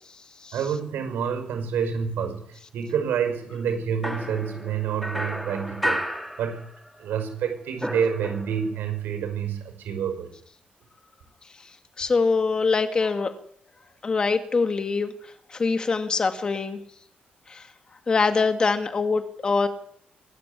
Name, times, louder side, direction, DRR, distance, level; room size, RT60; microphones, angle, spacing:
voice 1, 0.5-6.0 6.4-6.7 7.0-10.3, right 7 dB, 85° right, 6 dB, 6.0 m, -28 dB
sound 1, 4.0-7.1 7.3-8.8, equal, ahead, 2.5 m, -32 dB
voice 2, 12.0-13.3 14.0-15.1 15.5-16.8 17.5-17.6 18.1-19.7, left 4 dB, 25° left, 8 dB, 1.9 m, -23 dB
24.5 x 13.5 x 9.9 m, 0.68 s
cardioid pair, 175°, 3 cm